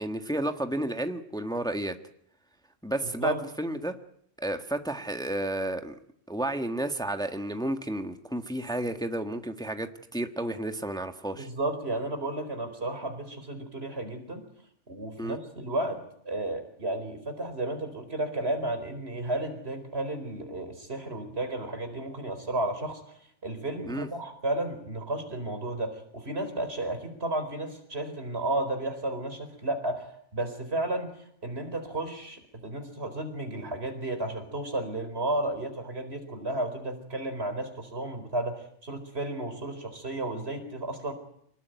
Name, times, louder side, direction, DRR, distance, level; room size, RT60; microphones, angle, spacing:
voice 1, 0.0-2.0 2.8-3.9 4.4-6.0 6.3-11.5 15.2-15.4 23.9-24.1, right 1 dB, 5° left, 7 dB, 1.5 m, -32 dB
voice 2, 11.4-14.4 14.9-31.1 31.4-41.1, right 1 dB, 55° right, 7 dB, 4.7 m, -33 dB
26.0 x 20.0 x 9.4 m, 0.69 s
omnidirectional pair, 1.3 m